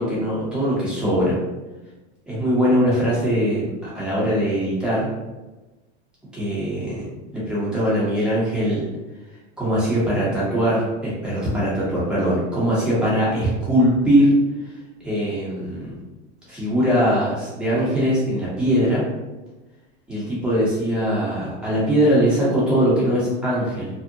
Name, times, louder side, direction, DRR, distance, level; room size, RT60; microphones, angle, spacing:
voice 1, 0.0-1.4 2.3-5.1 6.3-7.1 7.3-8.9 9.6-14.3 15.0-15.9 16.5-19.0 20.1-23.9, equal, 5° right, -9 dB, 0.9 m, -21 dB
2.7 x 2.1 x 2.6 m, 1.1 s
supercardioid pair, 135°, 36 cm